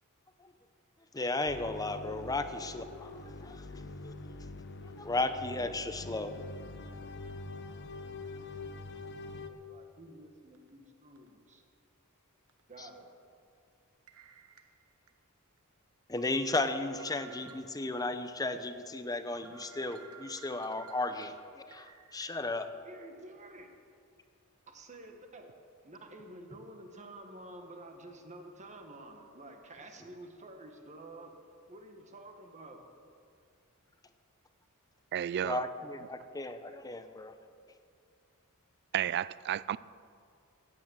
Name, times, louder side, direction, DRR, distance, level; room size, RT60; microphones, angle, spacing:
voice 1, 1.1-4.5 5.0-6.3 12.8-12.9 16.1-21.4 21.7-22.7 35.4-37.3, left 2 dB, 15° left, 0.7 m, -35 dB
sound 1, 1.5-9.5, left 2 dB, 55° left, 0.8 m, -44 dB
voice 2, 9.4-11.6 12.7-13.1 22.8-23.7 24.7-25.5 25.8-31.3 31.7-32.8, right 1 dB, 35° right, 1.5 m, -50 dB
sound 2, 10.5-10.7 11.2-11.3 12.5-12.6 14.1-15.1 15.6-15.7 16.2-18.1 18.5-18.6 19.0-19.1 19.4-22.3, right 6 dB, 85° right, 1.3 m, -54 dB
voice 3, 35.1-35.6 38.9-39.8, right 10 dB, 50° right, 0.3 m, -32 dB
15.0 x 9.8 x 7.5 m
head